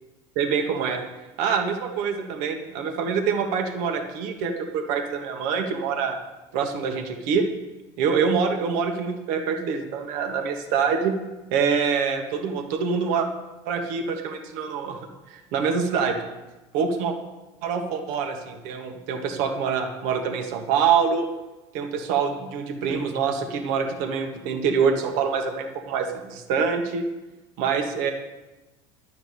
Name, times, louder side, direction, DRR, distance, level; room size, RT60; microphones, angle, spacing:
voice 1, 0.3-1.0 1.4-6.2 6.5-7.4 8.0-11.1 11.5-13.3 13.6-16.2 16.7-17.1 17.6-21.3 21.7-27.0 27.6-28.1, right 6 dB, 70° right, 4 dB, 1.6 m, -25 dB
11.0 x 5.9 x 8.5 m, 1.1 s
hypercardioid pair, 80°, 14 cm